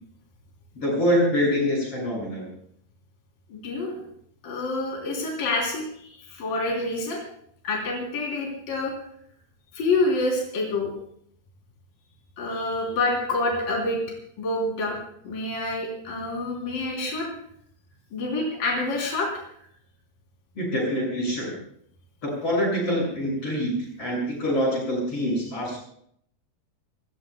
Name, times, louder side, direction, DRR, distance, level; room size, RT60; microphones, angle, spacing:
voice 1, 0.8-2.5 20.6-21.6 22.2-25.8, equal, 40° left, -2 dB, 7.4 m, -25 dB
voice 2, 3.5-4.0 4.4-7.2 7.6-8.9 9.7-10.9 12.4-14.0 14.4-17.3 18.1-19.3, left 2 dB, 75° left, -1 dB, 5.0 m, -27 dB
27.5 x 18.5 x 2.3 m, 0.67 s
omnidirectional pair, 4.0 m